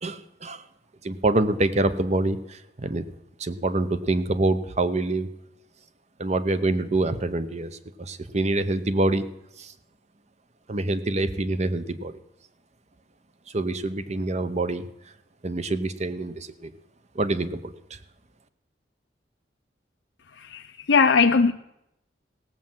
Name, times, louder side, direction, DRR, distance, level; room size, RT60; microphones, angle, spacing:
voice 1, 0.0-0.6 1.0-3.1 3.4-5.3 6.2-7.7 8.0-9.2 9.6-9.7 10.7-12.2 13.5-14.9 15.4-16.7 17.1-18.0, right 2 dB, 40° right, 0.9 m, -26 dB
voice 2, 20.4-21.5, left 5 dB, 90° left, 0.6 m, -20 dB
16.5 x 7.6 x 7.4 m
head